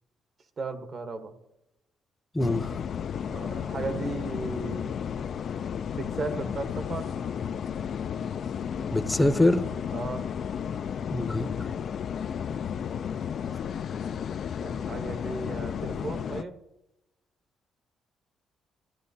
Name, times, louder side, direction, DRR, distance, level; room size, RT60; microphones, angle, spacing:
voice 1, 0.6-1.3 3.3-4.9 5.9-7.1 9.9-10.2 14.5-16.6, right 3 dB, 50° right, 8 dB, 1.1 m, -35 dB
voice 2, 2.3-2.8 8.9-9.7 11.1-11.5, left 1 dB, 10° left, 10 dB, 0.7 m, -24 dB
sound 1, 2.4-16.4, left 8 dB, 60° left, 0.3 m, -33 dB
13.5 x 10.5 x 2.7 m, 0.91 s
cardioid pair, 90°, 0 cm